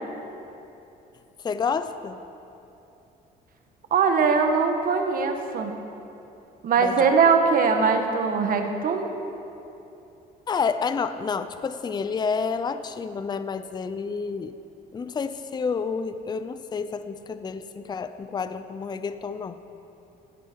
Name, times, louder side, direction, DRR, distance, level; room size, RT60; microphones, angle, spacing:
voice 1, 1.4-2.2 6.8-7.2 10.5-14.5 14.9-19.6, left 5 dB, 25° left, 11 dB, 0.6 m, -29 dB
voice 2, 3.9-5.7 6.6-9.1, right 5 dB, 55° right, 5 dB, 1.7 m, -21 dB
16.0 x 15.0 x 4.7 m, 2.9 s
cardioid pair, 110°, 17 cm